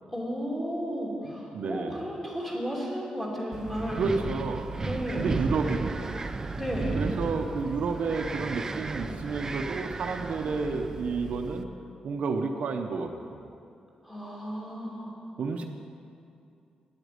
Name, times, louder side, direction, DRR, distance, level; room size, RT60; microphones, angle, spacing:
voice 1, 0.1-4.0 4.8-5.3 6.6-6.9 14.0-15.1, equal, 10° left, -5 dB, 2.9 m, -33 dB
voice 2, 1.2-2.1 3.9-4.7 5.2-6.0 6.9-11.7 12.0-13.4 15.4-15.6, right 4 dB, 65° right, 4 dB, 0.8 m, -31 dB
Wind, 3.5-11.6, right 3 dB, 25° right, 0.5 m, -34 dB
9.8 x 8.1 x 9.4 m, 2.6 s
wide cardioid pair, 155°, 2 cm